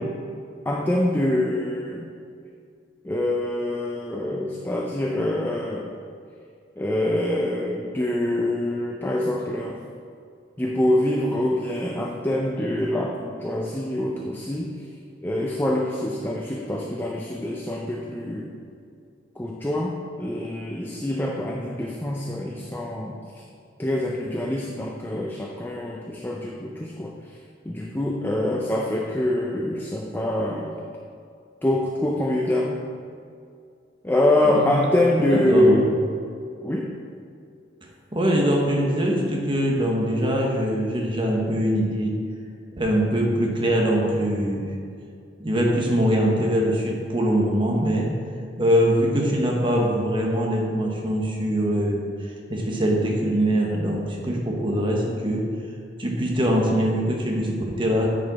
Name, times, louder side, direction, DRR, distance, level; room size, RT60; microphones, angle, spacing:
voice 1, 0.7-2.1 3.0-5.9 6.8-9.8 10.6-14.8 15.2-18.5 19.4-23.2 23.8-27.4 27.7-30.8 31.6-32.8 34.0-35.9 36.6-36.9, left 1 dB, 10° left, -1 dB, 0.5 m, -25 dB
voice 2, 35.2-35.8 38.1-42.1 42.8-44.7 45.4-48.1 48.6-52.1 52.5-55.4 56.0-58.1, equal, 25° right, -1 dB, 1.1 m, -23 dB
9.6 x 5.1 x 4.1 m, 2.3 s
head